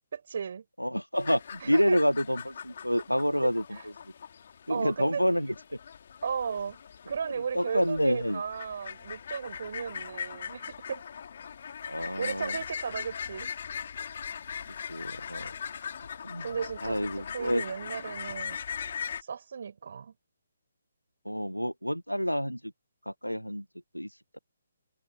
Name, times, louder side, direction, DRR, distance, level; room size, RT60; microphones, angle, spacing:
voice 1, 0.1-0.6 1.6-2.0 3.4-3.8 4.7-5.2 6.2-6.8 7.1-11.0 12.0-13.5 16.4-18.6 19.2-20.1, right 6 dB, 50° right, 5.2 m, -35 dB
voice 2, 0.8-3.6 4.7-5.5 7.5-8.4 11.8-12.6 14.9-15.5 16.2-16.5 16.8-17.6 21.2-22.6 23.1-23.6 23.9-24.1, equal, 90° left, 1.3 m, -28 dB
sound 1, 1.2-19.2, left 7 dB, 45° left, 5.0 m, -40 dB
open air
figure-of-eight pair, 135°, 0 cm